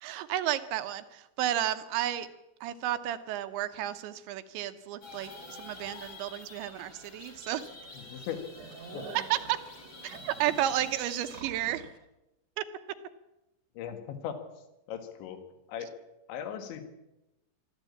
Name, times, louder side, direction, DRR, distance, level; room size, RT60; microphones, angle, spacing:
voice 1, 0.0-2.3 2.6-7.7 9.3-9.6 10.0-11.8 12.6-12.7, right 12 dB, 75° right, 10 dB, 3.0 m, -32 dB
sound 1, 5.0-11.4, left 2 dB, 30° left, 4.5 m, -48 dB
sound 2, 6.7-6.8 7.3-7.4 7.7-7.9 8.2-12.0, right 5 dB, 55° right, 1.9 m, -47 dB
voice 2, 7.9-8.4 8.9-9.0 10.5-10.6 13.8-14.4 14.9-15.4 15.7-15.9 16.3-16.8, left 9 dB, 70° left, 8 dB, 4.1 m, -38 dB
23.0 x 14.0 x 8.6 m, 0.95 s
omnidirectional pair, 5.7 m